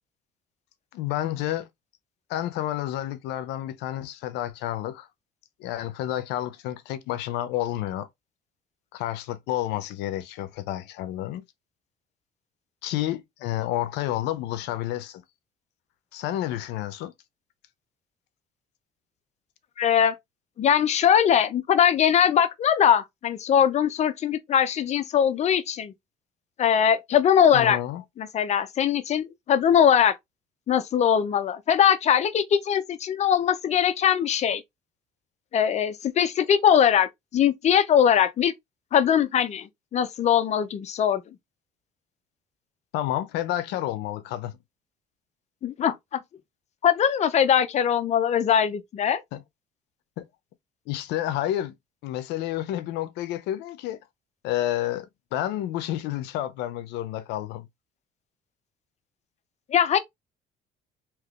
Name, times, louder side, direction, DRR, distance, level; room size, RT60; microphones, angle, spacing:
voice 1, 0.9-1.7 2.3-5.1 5.6-8.1 8.9-11.4 12.8-15.2 16.1-17.1 27.5-28.0 42.9-44.5 49.3-49.4 50.2-50.3 50.9-51.7 52.0-54.0 54.4-57.7, left 13 dB, 90° left, 0.6 m, -30 dB
voice 2, 19.8-20.1 20.6-25.9 26.6-27.8 28.2-30.1 30.7-34.6 35.5-38.5 38.9-41.2 45.6-46.2 46.8-49.2 59.7-60.0, left 8 dB, 40° left, 0.5 m, -21 dB
3.4 x 2.9 x 2.3 m
cardioid pair, 110°, 17 cm